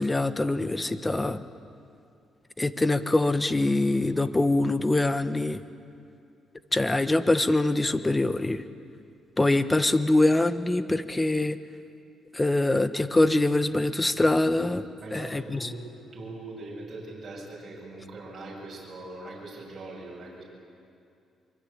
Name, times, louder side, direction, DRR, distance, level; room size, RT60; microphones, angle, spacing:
voice 1, 0.0-1.4 2.6-5.6 6.7-8.6 9.4-11.6 12.3-14.8 15.1-15.4, left 2 dB, 15° left, 11 dB, 1.2 m, -24 dB
voice 2, 15.0-15.9 16.1-20.4, right 2 dB, 40° right, -4 dB, 7.7 m, -41 dB
24.0 x 24.0 x 8.9 m, 2.4 s
cardioid pair, 90°, 0 cm